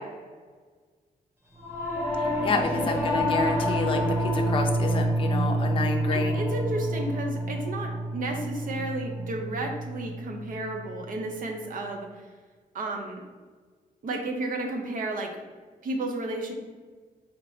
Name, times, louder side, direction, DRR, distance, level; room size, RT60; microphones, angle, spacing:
Singing / Musical instrument, 1.6-11.1, right 1 dB, 15° right, 0.7 m, -28 dB
voice 1, 2.4-4.0 4.3-6.4, left 3 dB, 35° left, 2 dB, 0.5 m, -28 dB
voice 2, 6.1-12.1 12.7-13.2 14.0-15.3 15.8-16.5, right 2 dB, 65° right, 3 dB, 0.7 m, -32 dB
4.3 x 2.8 x 3.2 m, 1.5 s
wide cardioid pair, 175°, 15 cm